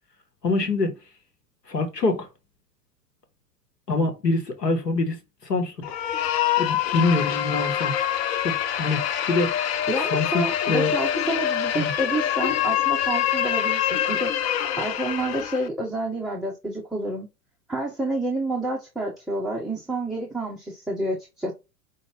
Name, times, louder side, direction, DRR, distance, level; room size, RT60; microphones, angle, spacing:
voice 1, 0.4-1.0 1.7-2.3 3.9-5.2 5.5-5.9 6.6-7.9 8.4-9.6 10.1-10.9 11.7-11.9, left 3 dB, 85° left, 1.2 m, -25 dB
sound 1, 5.8-15.7, left 11 dB, 40° left, 0.6 m, -25 dB
voice 2, 9.9-14.3 14.8-17.3 17.7-21.5, right 2 dB, ahead, 0.4 m, -29 dB
5.1 x 2.4 x 3.5 m
figure-of-eight pair, 95°, 47 cm